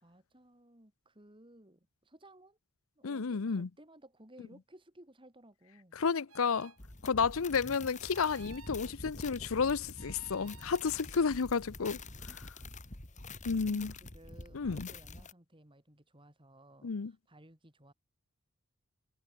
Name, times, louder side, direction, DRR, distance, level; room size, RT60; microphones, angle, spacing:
voice 1, 0.0-2.6 3.0-6.0 12.3-12.4 13.4-17.9, right 1 dB, 25° right, 3.6 m, -58 dB
voice 2, 3.0-3.7 6.0-6.7 7.0-12.0 13.4-13.9 14.5-14.9 16.8-17.1, left 5 dB, 70° left, 0.6 m, -31 dB
sound 1, 6.3-6.8 8.1-8.8 9.9-10.9, right 6 dB, 75° right, 4.0 m, -55 dB
sound 2, 6.8-15.3, left 3 dB, 35° left, 2.8 m, -47 dB
head